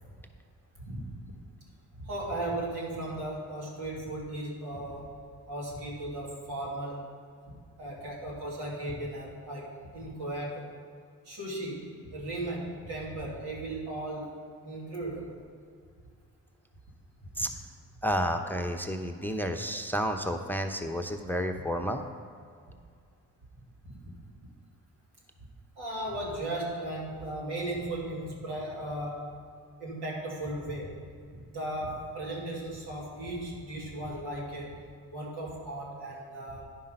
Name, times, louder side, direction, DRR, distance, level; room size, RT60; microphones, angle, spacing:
voice 1, 0.7-1.1 2.0-5.2 5.5-7.1 7.8-10.7 11.3-14.3 14.6-15.4 23.9-24.1 25.8-29.4 29.8-31.0 31.3-34.8 35.1-36.6, right 1 dB, 80° right, -4 dB, 2.4 m, -36 dB
voice 2, 18.0-22.0, equal, 5° left, 5 dB, 0.7 m, -31 dB
10.0 x 5.5 x 5.4 m, 2.3 s
supercardioid pair, 45°, 39 cm